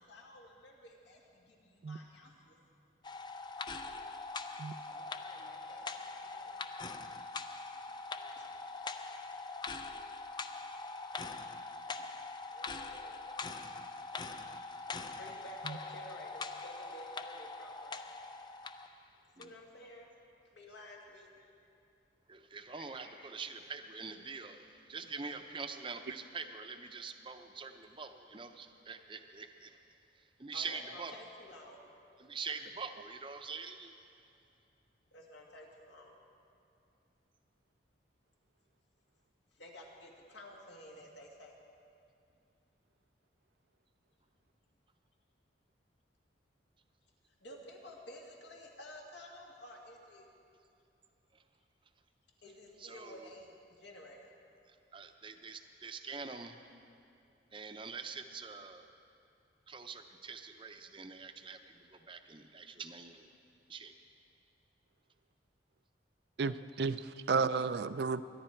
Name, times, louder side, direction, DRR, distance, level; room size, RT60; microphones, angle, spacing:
voice 1, 0.0-2.6 4.8-6.5 8.4-9.1 9.7-10.5 12.5-13.2 15.2-18.5 19.4-20.1 20.5-21.5 22.5-23.3 30.5-31.9 35.1-36.2 39.5-41.6 47.3-50.3 52.4-54.3, left 1 dB, 70° left, -1 dB, 2.1 m, -53 dB
sound 1, 3.0-18.9 19.4-19.5, left 3 dB, 25° left, 0.4 m, -43 dB
voice 2, 22.3-29.7 30.4-31.1 32.2-34.0 52.8-53.3 54.9-56.6 57.5-58.8 59.7-63.3 63.7-63.9, right 5 dB, 25° right, 7 dB, 0.7 m, -45 dB
voice 3, 66.4-68.2, right 4 dB, 60° right, 14 dB, 0.4 m, -32 dB
23.5 x 11.0 x 4.5 m, 2.6 s
head